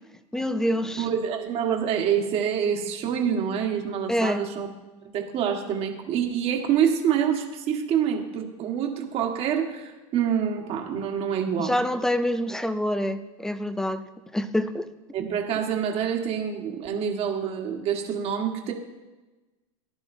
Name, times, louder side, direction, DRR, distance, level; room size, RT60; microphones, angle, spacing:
voice 1, 0.3-1.1 4.1-4.5 11.6-14.0 14.3-14.9, left 1 dB, 5° left, 11 dB, 0.4 m, -26 dB
voice 2, 1.0-4.7 5.1-11.7 15.1-18.7, right 8 dB, 35° right, 3 dB, 1.4 m, -26 dB
15.0 x 11.0 x 2.7 m, 1.2 s
supercardioid pair, 145°, 18 cm